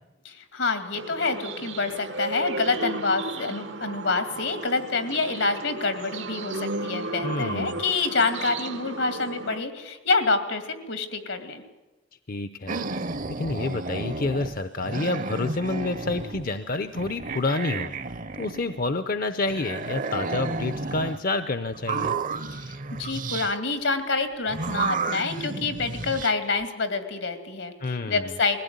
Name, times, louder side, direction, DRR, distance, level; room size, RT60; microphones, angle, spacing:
voice 1, 0.2-11.6 22.6-22.7 23.0-28.6, left 3 dB, 85° left, 8 dB, 2.4 m, -27 dB
sound 1, 0.9-9.6, right 3 dB, 75° right, 1.1 m, -34 dB
voice 2, 7.2-7.8 12.3-12.8 13.4-17.9 18.4-22.2 27.8-28.3, left 2 dB, 50° left, 11 dB, 0.7 m, -28 dB
sound 2, 12.7-14.6 14.8-16.6 16.9-18.9 19.5-21.2 21.7-23.5 24.5-26.3, right 4 dB, 45° right, 0.8 m, -32 dB
21.0 x 16.5 x 9.5 m, 1.1 s
head